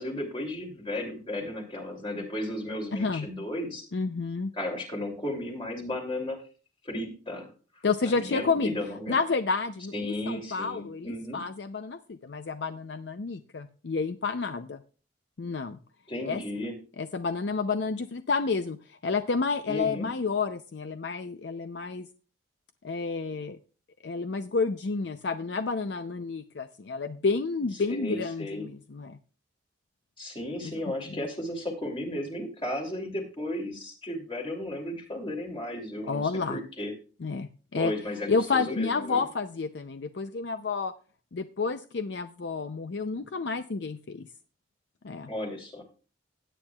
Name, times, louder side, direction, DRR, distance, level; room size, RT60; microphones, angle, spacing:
voice 1, 0.0-3.9 4.5-6.4 6.8-7.5 7.7-9.2 9.9-11.4 16.1-16.8 19.7-20.1 27.9-28.7 30.2-36.9 37.7-39.2 45.3-45.8, left 1 dB, 30° left, 2 dB, 2.8 m, -34 dB
voice 2, 2.9-3.3 3.9-4.5 7.8-8.7 9.1-14.8 15.4-15.8 16.2-16.4 17.0-22.1 22.8-23.6 24.0-29.2 30.6-30.7 36.1-36.6 37.2-37.9 38.3-40.9 41.3-44.3 45.0-45.3, left 4 dB, 65° left, 10 dB, 0.5 m, -30 dB
17.0 x 8.9 x 2.3 m, 0.36 s
head